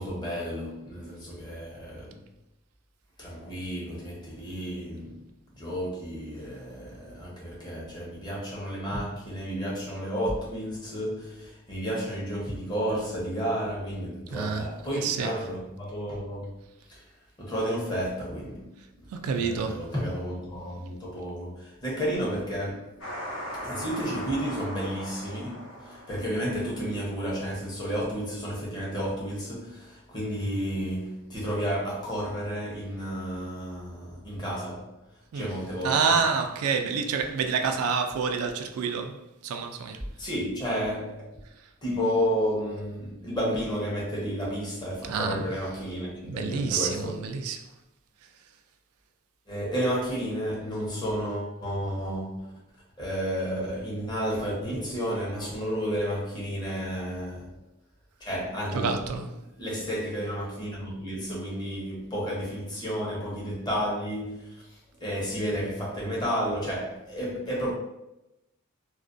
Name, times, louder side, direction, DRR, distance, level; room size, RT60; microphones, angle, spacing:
voice 1, 0.0-2.2 3.2-5.3 5.6-16.5 16.9-17.0 17.4-18.7 19.3-23.0 23.6-34.9 35.3-36.2 40.2-41.3 41.8-47.2 49.5-52.5 53.0-57.6 58.2-59.1 59.6-67.7, equal, 20° left, 0.7 m, -32 dB
voice 2, 14.3-14.6 15.0-15.3 19.2-19.8 35.3-35.5 35.8-39.1 39.4-40.0 45.1-45.4 46.2-47.6 58.8-59.3, right 5 dB, 85° right, 0.3 m, -27 dB
sound 1, 23.0-27.3, equal, 65° left, 0.9 m, -39 dB
2.4 x 2.1 x 2.4 m
head